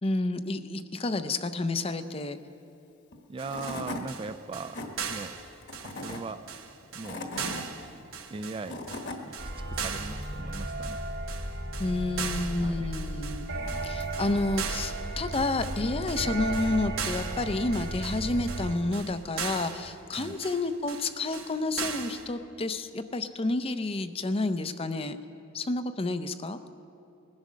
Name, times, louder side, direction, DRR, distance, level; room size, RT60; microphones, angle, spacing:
voice 1, 0.0-2.4 11.8-13.5 13.8-25.2 25.5-26.6, left 2 dB, 30° left, 10 dB, 0.5 m, -30 dB
Tools / Wood, 3.1-3.2 3.5-4.0 4.5-4.9 5.6-6.2 6.8-7.6 8.4-9.2, left 2 dB, 55° left, 1.3 m, -37 dB
voice 2, 3.3-5.4 5.8-6.5 6.9-7.3 8.3-11.0 12.6-13.0 20.1-20.4, right 3 dB, 25° right, 11 dB, 0.3 m, -40 dB
sound 1, 3.4-22.3, right 6 dB, 85° right, 1.1 m, -39 dB
sound 2, 9.4-18.8, right 1 dB, 70° right, 3.3 m, -35 dB
20.5 x 10.5 x 6.3 m, 2.7 s
head